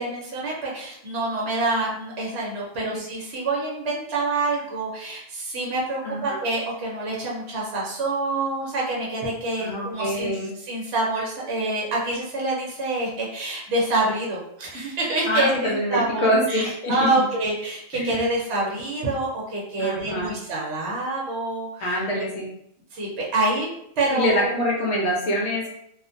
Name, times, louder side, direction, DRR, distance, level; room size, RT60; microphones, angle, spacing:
voice 1, 0.0-10.3 10.6-22.2 22.9-23.7 24.0-24.5, right 2 dB, 60° right, -4 dB, 0.9 m, -26 dB
voice 2, 6.0-6.4 9.6-10.5 15.3-17.1 17.9-18.2 19.8-20.3 21.8-22.5 24.1-25.7, equal, 65° left, -3 dB, 0.9 m, -25 dB
2.4 x 2.2 x 2.5 m, 0.72 s
omnidirectional pair, 1.3 m